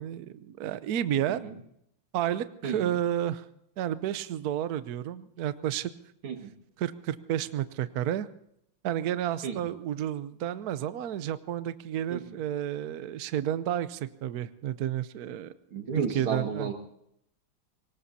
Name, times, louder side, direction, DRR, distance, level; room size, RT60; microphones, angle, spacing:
voice 1, 0.0-1.4 2.1-3.4 3.8-5.9 6.8-8.3 8.8-15.5 16.0-16.7, right 11 dB, 65° right, 13 dB, 1.0 m, -31 dB
voice 2, 2.6-3.0 6.2-6.5 9.4-9.6 12.1-12.4 15.7-16.7, right 6 dB, 85° right, 4 dB, 2.8 m, -33 dB
23.5 x 19.5 x 2.8 m, 0.74 s
omnidirectional pair, 2.2 m